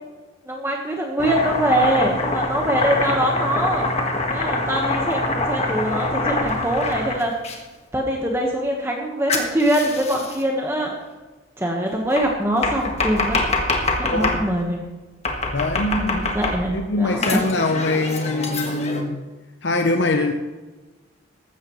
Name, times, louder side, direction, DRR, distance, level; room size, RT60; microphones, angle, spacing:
voice 1, 0.4-3.9 4.3-7.3 7.9-10.9 11.6-13.4 14.0-14.9 16.0-17.4, right 1 dB, 15° right, 0 dB, 1.3 m, -23 dB
Domestic sounds home sounds, 1.2-7.6 9.3-10.4 12.2-14.4 15.2-16.8 17.2-19.0, left 2 dB, 35° left, 1.6 m, -25 dB
voice 2, 14.1-14.4 15.5-16.3 16.7-19.2 19.6-20.3, left 2 dB, 65° left, 5 dB, 0.8 m, -23 dB
15.0 x 13.0 x 3.2 m, 1.3 s
head